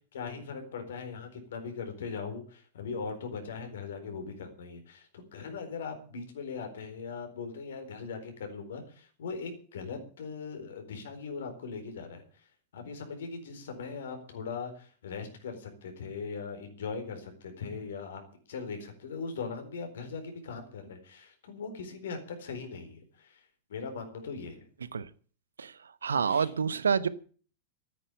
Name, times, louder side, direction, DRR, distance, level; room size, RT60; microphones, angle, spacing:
voice 1, 0.1-12.5 12.7-18.2 18.5-23.4 23.7-24.6 26.2-26.5, left 5 dB, 60° left, 5 dB, 4.2 m, -40 dB
voice 2, 26.0-27.1, right 6 dB, 70° right, 17 dB, 0.9 m, -27 dB
13.5 x 9.8 x 8.3 m, 0.43 s
figure-of-eight pair, 90°, 0 cm